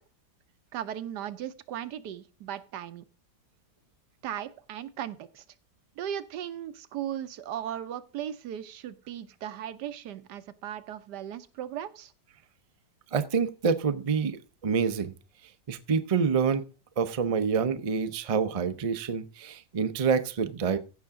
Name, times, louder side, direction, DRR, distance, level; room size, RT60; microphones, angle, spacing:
voice 1, 0.7-3.0 4.2-5.4 6.0-12.1, right 10 dB, 85° right, 12 dB, 1.4 m, -37 dB
voice 2, 13.1-15.1 15.7-16.6 17.0-20.8, right 6 dB, 65° right, 10 dB, 0.3 m, -27 dB
15.5 x 5.8 x 3.6 m, 0.33 s
omnidirectional pair, 1.8 m